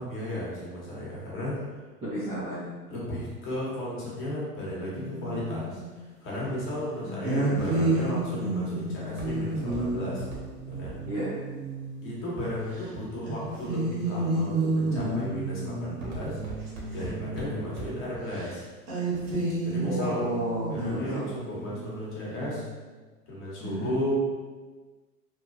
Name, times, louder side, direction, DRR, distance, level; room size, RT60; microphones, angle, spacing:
voice 1, 0.0-1.6 2.9-10.2 10.7-11.0 12.0-16.4 16.9-18.6 19.6-20.2 20.7-22.6 23.3-24.2, equal, 25° left, -6 dB, 0.9 m, -34 dB
voice 2, 2.0-2.7 7.0-7.8 11.1-11.3 19.8-21.3 23.6-23.9, right 1 dB, 15° right, -11 dB, 0.5 m, -33 dB
sound 1, 4.9-5.9 7.2-12.2 12.7-12.9 13.2-18.0 18.3-18.5 18.9-22.6, right 2 dB, 90° right, 1.1 m, -31 dB
Walk footsteps, 7.9-13.0 13.6-14.1 14.6-15.0 15.3-18.2 18.5-18.6, right 2 dB, 55° right, 1.1 m, -42 dB
3.0 x 2.2 x 2.5 m, 1.3 s
hypercardioid pair, 120°, 48 cm